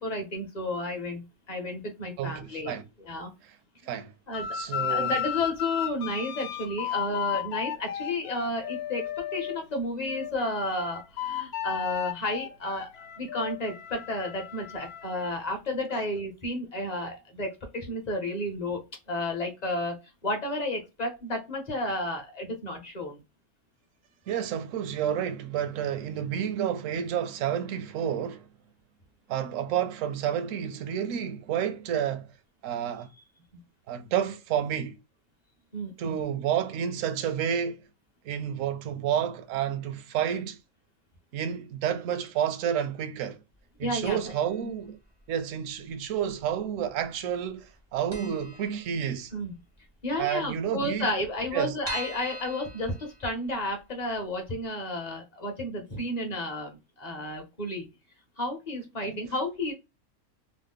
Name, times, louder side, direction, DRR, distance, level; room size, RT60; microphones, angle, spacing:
voice 1, 0.0-3.3 4.3-4.6 4.9-12.9 13.2-18.8 19.1-23.2 35.7-36.2 43.8-44.3 49.3-49.5 50.0-57.9 58.4-59.7, left 1 dB, 35° left, 0.7 m, -32 dB
voice 2, 2.2-2.9 3.8-4.1 4.5-5.1 24.3-28.5 29.3-32.3 32.6-33.1 33.9-35.0 36.0-37.8 38.2-40.6 41.3-43.4 43.8-45.0 45.3-49.3 50.2-51.1 51.5-51.8 59.0-59.2, right 9 dB, 70° right, 0.9 m, -30 dB
sound 1, 4.3-9.6 10.0-15.3, left 10 dB, 85° left, 1.1 m, -34 dB
sound 2, 44.0-44.6 44.8-44.9 45.9-46.6 46.9-47.0 47.3-47.4 47.7-47.8 48.1-49.4 49.8-49.9 50.2-50.3 50.5-50.6 51.1-53.7 54.1-54.2 54.6-54.7, right 1 dB, 30° right, 0.5 m, -41 dB
3.0 x 2.0 x 3.5 m
omnidirectional pair, 1.5 m